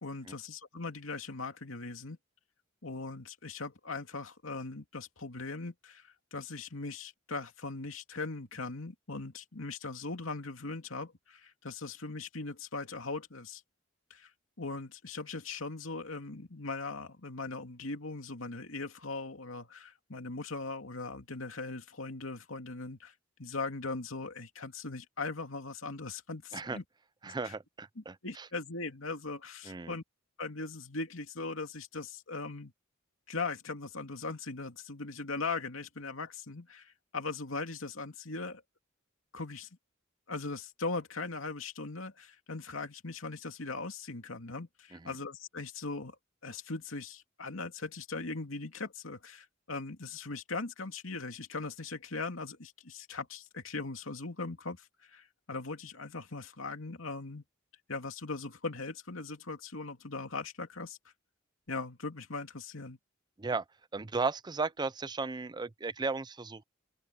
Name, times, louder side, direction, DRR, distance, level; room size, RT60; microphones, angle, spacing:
voice 1, 0.0-2.2 2.8-6.0 6.3-13.6 14.1-14.3 14.6-23.1 23.4-26.8 27.4-27.5 28.0-30.0 30.4-32.7 33.3-38.6 39.3-39.7 40.3-46.2 46.4-57.4 57.9-61.0 61.7-63.0, left 3 dB, 80° left, 2.6 m, -39 dB
voice 2, 27.2-28.5 29.6-30.0 44.9-45.2 63.4-63.6 63.9-66.6, right 4 dB, 20° right, 0.5 m, -35 dB
open air
head